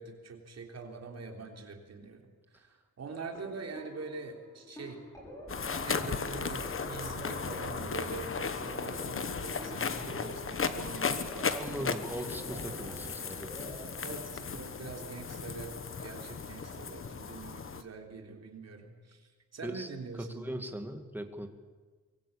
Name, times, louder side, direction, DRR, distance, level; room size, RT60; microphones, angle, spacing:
voice 1, 0.0-5.0 5.8-12.0 14.0-20.4, right 4 dB, 60° right, 3 dB, 3.7 m, -44 dB
sound 1, 3.3-13.9, right 1 dB, 10° left, 6.8 m, -47 dB
sound 2, 5.5-17.8, left 5 dB, 45° left, 1.3 m, -36 dB
voice 2, 11.2-13.8 19.6-19.9 20.2-21.5, right 1 dB, 5° right, 6 dB, 2.1 m, -40 dB
23.5 x 22.0 x 8.7 m, 1.4 s
wide cardioid pair, 150°, 30 cm